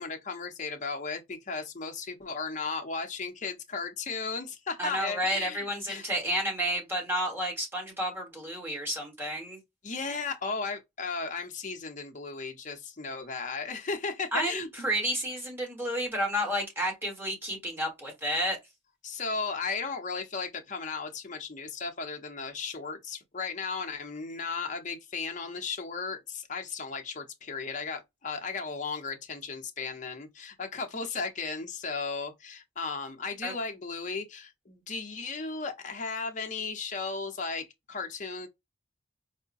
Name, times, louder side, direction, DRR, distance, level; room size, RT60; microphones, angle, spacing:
voice 1, 0.0-6.1 9.8-14.9 19.0-38.5, left 4 dB, 40° left, 0.7 m, -35 dB
voice 2, 4.8-9.6 14.3-18.6 33.4-33.5, equal, 10° right, 1.3 m, -31 dB
4.6 x 2.1 x 2.5 m
head